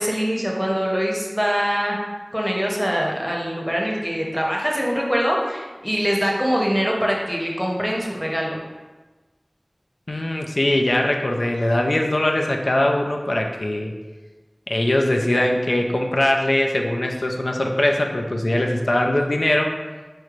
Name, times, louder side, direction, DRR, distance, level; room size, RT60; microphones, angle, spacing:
voice 1, 0.0-2.0 2.3-8.6, equal, ahead, -2 dB, 0.7 m, -23 dB
voice 2, 10.1-13.9 14.7-19.7, left 1 dB, 90° left, 2 dB, 0.3 m, -21 dB
4.3 x 3.1 x 2.4 m, 1.2 s
wide cardioid pair, 45°, 0 cm